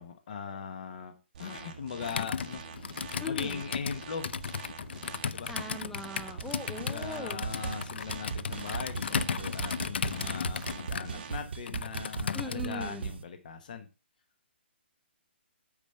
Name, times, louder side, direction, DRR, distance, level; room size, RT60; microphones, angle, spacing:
voice 1, 0.0-4.3 5.3-5.5 6.8-13.9, left 6 dB, 45° left, 8 dB, 1.0 m, -40 dB
sound 1, 1.3-11.4, right 7 dB, 35° right, 1.4 m, -46 dB
Computer keyboard, 2.0-12.8, left 6 dB, 65° left, 0.5 m, -35 dB
voice 2, 3.2-3.6 5.5-7.4 12.3-13.1, left 1 dB, ahead, 5 dB, 0.6 m, -39 dB
sound 2, 6.4-6.5 6.8-7.2 7.4-13.2, right 6 dB, 65° right, 1.0 m, -39 dB
8.6 x 5.2 x 5.6 m, 0.30 s
hypercardioid pair, 170°, 6 cm